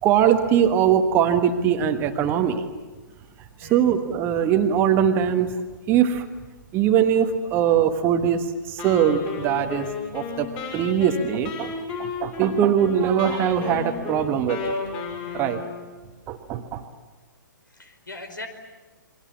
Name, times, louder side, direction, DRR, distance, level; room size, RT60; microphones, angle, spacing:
voice 1, 0.0-2.6 3.6-5.5 5.9-6.2 6.7-9.9 10.1-11.7 12.0-14.8 15.3-15.6 16.3-16.8, right 9 dB, 20° right, 7 dB, 1.4 m, -21 dB
Wind instrument woodwind instrument, 8.8-15.9, left 5 dB, 25° left, 6.1 m, -33 dB
voice 2, 15.3-15.6 17.7-18.5, left 2 dB, 70° left, 8 dB, 5.1 m, -40 dB
28.5 x 23.5 x 7.3 m, 1.2 s
figure-of-eight pair, 125°, 11 cm